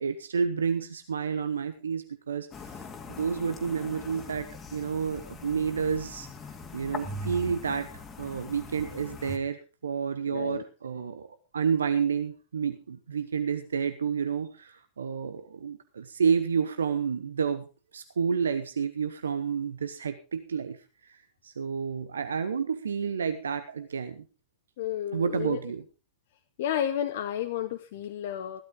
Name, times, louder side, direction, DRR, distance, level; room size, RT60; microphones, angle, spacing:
voice 1, 0.0-2.5 2.7-2.8 3.2-6.3 6.7-11.3 11.5-17.7 17.9-20.8 21.1-21.2 21.4-24.2 25.1-25.8, right 6 dB, 70° right, 10 dB, 0.9 m, -30 dB
sound 1, 2.5-9.4, left 2 dB, 20° left, 2.0 m, -41 dB
voice 2, 10.3-10.6 24.8-25.6 26.6-28.6, left 10 dB, 55° left, 6 dB, 1.0 m, -31 dB
16.0 x 12.0 x 3.7 m, 0.32 s
figure-of-eight pair, 90°, 0 cm